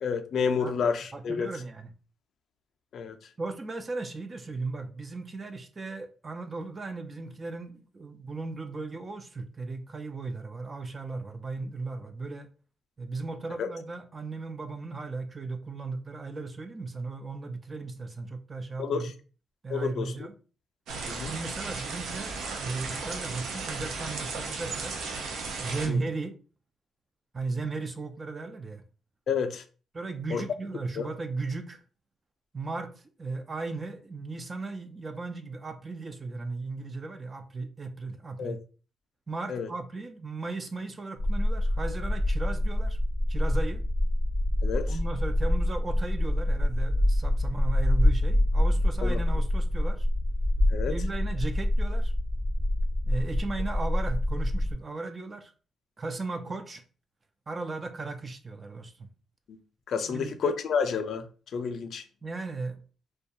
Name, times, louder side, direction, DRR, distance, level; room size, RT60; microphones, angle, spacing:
voice 1, 0.0-1.5 2.9-3.2 13.6-13.7 18.8-19.1 19.7-20.1 21.1-21.3 25.9-26.0 29.3-29.6 30.3-30.4 31.0-31.1 38.4-38.6 39.5-39.7 44.6-45.0 49.0-49.2 50.7-50.9 59.9-61.3 61.5-62.0, left 6 dB, 65° left, 0.3 m, -29 dB
voice 2, 1.1-1.9 3.4-12.5 13.0-19.1 19.6-20.4 21.2-25.0 25.6-26.4 27.3-28.8 29.9-31.8 32.5-38.6 39.3-43.0 43.3-43.8 44.9-50.1 50.8-52.1 53.1-55.5 56.0-56.8 57.5-59.1 60.1-60.5 62.2-62.8, right 3 dB, 25° right, 0.3 m, -36 dB
sound 1, 20.9-25.9, right 4 dB, 85° right, 0.5 m, -35 dB
sound 2, 41.2-54.7, left 1 dB, 60° right, 0.7 m, -26 dB
2.2 x 2.2 x 2.7 m
cardioid pair, 115°, 0 cm